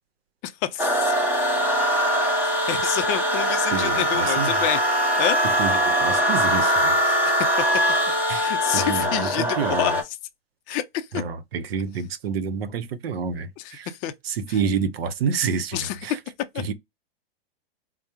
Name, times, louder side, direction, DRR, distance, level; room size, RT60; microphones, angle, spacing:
voice 1, 0.4-1.1 2.4-4.8 5.2-5.4 7.2-7.5 8.4-9.9 10.7-11.2 13.9-14.1 15.7-16.0 16.5-16.6, left 12 dB, 30° left, 0.5 m, -28 dB
sound 1, 0.8-10.0, equal, 5° right, 0.7 m, -22 dB
voice 2, 3.7-4.5 5.4-7.0 7.2-7.4 8.3-8.5 8.7-10.0 11.1-13.9 14.2-16.2 16.6-16.7, right 6 dB, 75° right, 0.8 m, -28 dB
4.6 x 2.1 x 2.9 m
hypercardioid pair, 135°, 31 cm